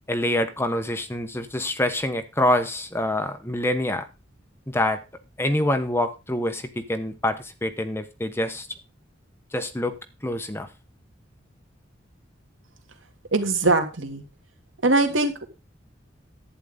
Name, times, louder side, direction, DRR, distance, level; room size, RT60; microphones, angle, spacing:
voice 1, 0.1-4.1 4.7-5.0 5.4-8.7 9.5-9.9 10.2-10.7, left 1 dB, 15° left, 8 dB, 1.2 m, -26 dB
voice 2, 13.3-14.2 14.8-15.4, right 2 dB, 90° right, 5 dB, 2.6 m, -21 dB
11.5 x 9.5 x 4.0 m, 0.28 s
head